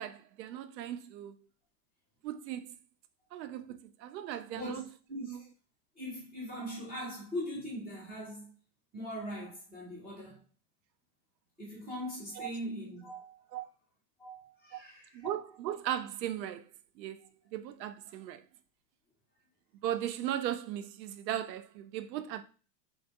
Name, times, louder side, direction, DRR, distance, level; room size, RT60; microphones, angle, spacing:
voice 1, 0.0-1.3 2.2-2.8 3.3-4.8 5.2-5.4 12.4-12.5 13.5-13.7 14.7-14.8 15.1-16.7 17.0-17.2 17.5-18.4 19.8-22.4, right 11 dB, 85° right, 0.6 m, -37 dB
voice 2, 4.5-4.8 5.1-5.3 6.0-8.5 8.9-10.4 11.6-13.5 14.2-15.3, equal, 5° right, 0.4 m, -41 dB
3.9 x 2.6 x 4.4 m
supercardioid pair, 160°, 50 cm